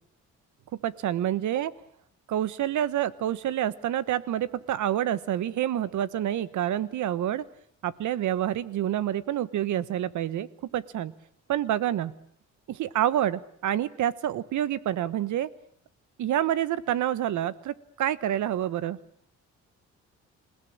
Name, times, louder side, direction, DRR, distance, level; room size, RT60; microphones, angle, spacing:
voice 1, 0.8-1.7 2.3-7.4 7.8-10.5 10.7-11.1 11.5-12.1 12.7-15.5 16.2-19.0, right 11 dB, 75° right, 17 dB, 1.2 m, -28 dB
27.0 x 17.0 x 8.7 m, 0.68 s
cardioid pair, 90°, 30 cm